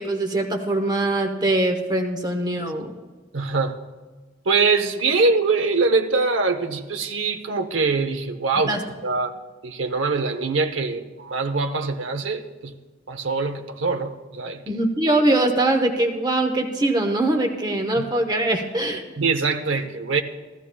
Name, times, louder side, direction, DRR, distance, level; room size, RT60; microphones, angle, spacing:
voice 1, 0.0-2.9 8.7-8.8 14.7-19.0, right 2 dB, 20° right, 0.8 m, -22 dB
voice 2, 3.3-3.8 4.4-8.7 9.0-9.3 9.6-12.7 13.1-14.6 18.0-18.1 19.2-20.2, right 4 dB, 75° right, 0.8 m, -23 dB
15.5 x 13.5 x 2.3 m
head